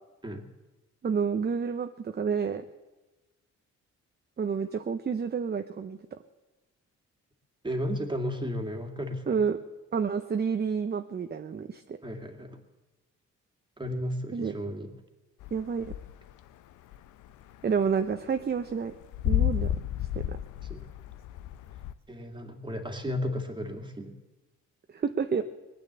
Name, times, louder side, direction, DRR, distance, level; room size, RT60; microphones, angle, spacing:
voice 1, 1.0-2.6 4.4-6.2 9.3-9.6 9.9-12.0 14.3-14.5 15.5-15.9 17.6-18.9 19.2-19.7 20.2-20.4 24.9-25.4, right 6 dB, 35° right, 8 dB, 0.8 m, -29 dB
voice 2, 7.6-9.4 12.0-12.6 13.8-14.9 20.7-20.9 22.1-24.1, equal, 15° right, 5 dB, 2.2 m, -34 dB
sound 1, 15.4-16.4 16.7-21.9, left 12 dB, 85° left, 0.7 m, -31 dB
20.0 x 9.0 x 8.1 m, 1.1 s
cardioid pair, 90°, 30 cm